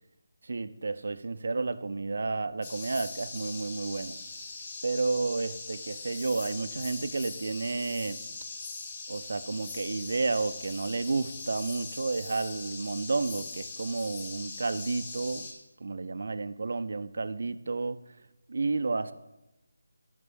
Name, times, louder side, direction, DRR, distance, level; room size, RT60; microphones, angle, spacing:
voice 1, 0.4-4.2 4.8-8.2 9.1-15.5 15.8-18.2 18.5-19.1, right 3 dB, 60° right, 13 dB, 0.6 m, -31 dB
sound 1, 2.6-15.5, left 3 dB, 30° left, 2.4 m, -41 dB
11.0 x 5.0 x 6.3 m, 0.94 s
figure-of-eight pair, 160°, 0 cm